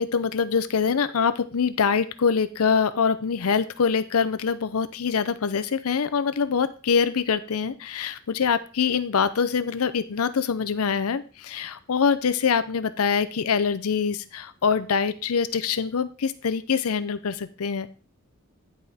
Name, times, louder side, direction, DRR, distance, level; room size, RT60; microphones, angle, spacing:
voice 1, 0.0-17.9, left 6 dB, 85° left, 13 dB, 0.6 m, -24 dB
10.5 x 5.0 x 4.2 m, 0.35 s
head